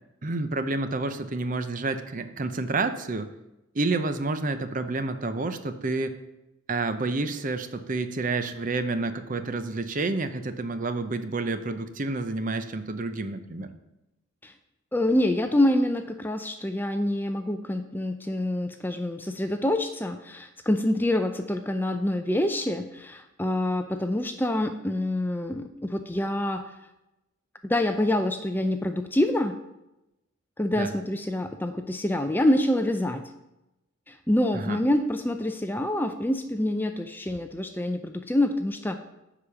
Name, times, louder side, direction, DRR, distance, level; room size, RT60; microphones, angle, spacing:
voice 1, 0.2-3.3 3.7-6.2 6.7-13.7 30.7-30.9 34.5-34.8, right 3 dB, 40° right, 10 dB, 0.6 m, -29 dB
voice 2, 14.9-26.7 27.6-29.6 30.6-33.2 34.1-39.0, left 1 dB, 10° left, 7 dB, 0.5 m, -26 dB
9.9 x 5.0 x 7.0 m, 0.93 s
head